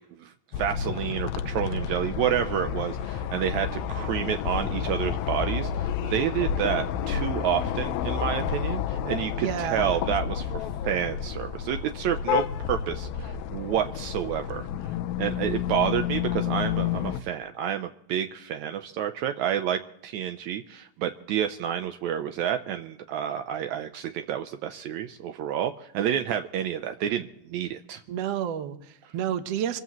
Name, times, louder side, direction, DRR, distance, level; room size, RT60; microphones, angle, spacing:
voice 1, 0.2-14.7 15.2-28.0, right 10 dB, 85° right, 7 dB, 1.6 m, -29 dB
sound 1, 0.5-17.2, left 8 dB, 80° left, 2.4 m, -30 dB
voice 2, 9.3-10.0 28.1-29.8, right 10 dB, 70° right, 9 dB, 1.5 m, -30 dB
26.0 x 15.0 x 3.0 m, 0.73 s
omnidirectional pair, 4.2 m